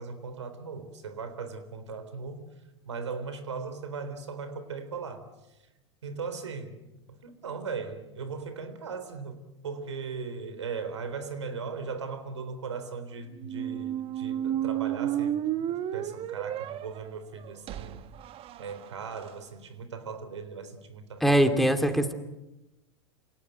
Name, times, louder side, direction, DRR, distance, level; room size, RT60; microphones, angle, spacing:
voice 1, 0.0-2.5 2.8-5.6 6.0-6.8 7.1-18.1 18.6-22.0, right 5 dB, 90° right, 11 dB, 3.8 m, -38 dB
sound 1, 13.4-19.3, right 11 dB, 40° right, 1.2 m, -32 dB
voice 2, 21.2-22.1, equal, ahead, 7 dB, 2.7 m, -22 dB
27.5 x 18.0 x 9.3 m, 0.99 s
hypercardioid pair, 100°, 15 cm